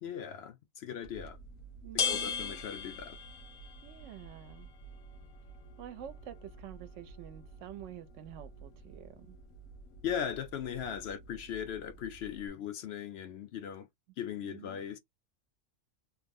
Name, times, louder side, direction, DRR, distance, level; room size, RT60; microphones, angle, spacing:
voice 1, 0.0-1.4 1.9-3.2 10.0-13.9 14.2-15.0, left 8 dB, 65° left, 0.7 m, -38 dB
sound 1, 1.0-12.5, left 5 dB, 85° left, 1.2 m, -42 dB
voice 2, 1.8-2.6 3.8-4.7 5.8-9.4 14.4-14.8, right 11 dB, 70° right, 0.9 m, -48 dB
3.1 x 2.0 x 3.5 m
omnidirectional pair, 1.4 m